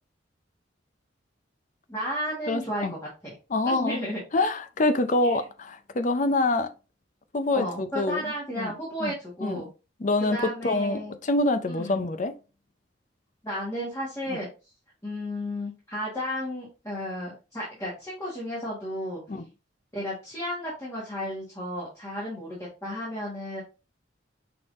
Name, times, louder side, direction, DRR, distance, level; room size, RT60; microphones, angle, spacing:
voice 1, 1.9-3.0 3.2-3.3 3.6-4.2 5.2-5.4 7.5-9.7 10.3-11.1 11.7-12.1 13.4-14.5 15.0-19.2 19.9-23.6, equal, 15° left, 1.4 m, -33 dB
voice 2, 2.5-2.9 3.5-4.0 4.3-6.7 7.3-8.7 9.0-9.1 9.4-9.6 10.0-10.4 10.6-12.3 14.3-14.4 19.3-19.4, left 2 dB, 40° left, 0.5 m, -26 dB
5.8 x 3.4 x 2.5 m
head